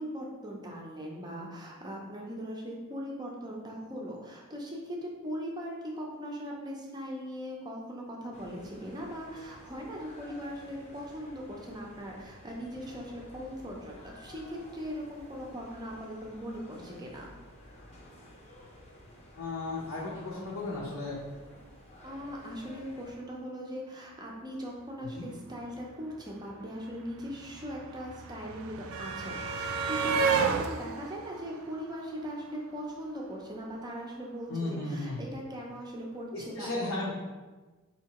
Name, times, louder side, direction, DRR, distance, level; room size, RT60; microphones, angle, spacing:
voice 1, 0.0-17.2 22.0-37.1, equal, 20° right, -2 dB, 0.5 m, -40 dB
sound 1, 8.3-23.2, left 1 dB, 30° left, 0.7 m, -52 dB
voice 2, 19.4-21.2 25.0-25.3 34.5-35.2 36.3-37.1, left 2 dB, 65° left, -7 dB, 0.7 m, -35 dB
sound 2, 26.1-26.2 26.4-32.6 33.8-33.9 34.2-34.3, right 5 dB, 70° right, 0.3 m, -32 dB
4.5 x 2.8 x 2.9 m, 1.3 s
head